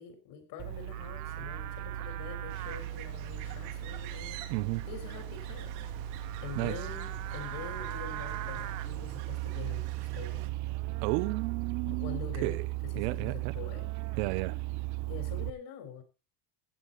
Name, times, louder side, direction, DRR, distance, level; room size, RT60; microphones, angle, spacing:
voice 1, 0.0-4.4 4.9-5.7 6.4-10.5 11.8-12.6 12.9-14.2 15.1-16.0, left 7 dB, 55° left, 4.2 m, -45 dB
Livestock farm animals working animals, 0.6-15.5, right 14 dB, 35° right, 0.8 m, -37 dB
sound 1, 2.5-10.5, right 13 dB, 65° right, 1.7 m, -49 dB
voice 2, 4.5-4.9 6.6-6.8 11.0-12.7 12.9-13.5 14.2-14.5, right 22 dB, 85° right, 1.0 m, -33 dB
15.0 x 9.1 x 4.1 m
cardioid pair, 175°, 47 cm